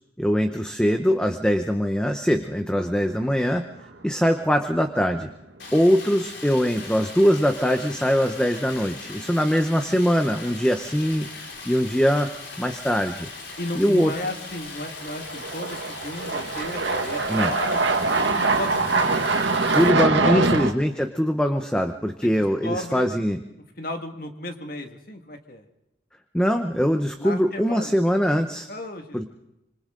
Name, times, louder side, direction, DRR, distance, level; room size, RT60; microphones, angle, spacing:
voice 1, 0.2-3.7 4.0-5.3 5.7-11.3 11.6-12.3 12.6-13.3 13.7-14.1 17.3-17.5 19.7-23.4 26.3-28.7 29.1-29.2, equal, 5° left, 6 dB, 0.8 m, -22 dB
sound 1, 2.7-3.4 3.8-3.9 6.7-6.8 8.2-8.4 8.7-8.8 14.2-14.3 15.0-20.7, right 3 dB, 85° right, 1.8 m, -23 dB
Stream, 5.6-19.9, left 4 dB, 85° left, 4.7 m, -39 dB
voice 2, 13.6-17.9 18.3-19.2 20.2-20.5 22.2-22.3 22.6-23.1 23.8-25.7 27.2-27.9 28.7-29.2, left 1 dB, 50° left, 4 dB, 2.0 m, -34 dB
26.5 x 25.5 x 3.8 m, 0.90 s
head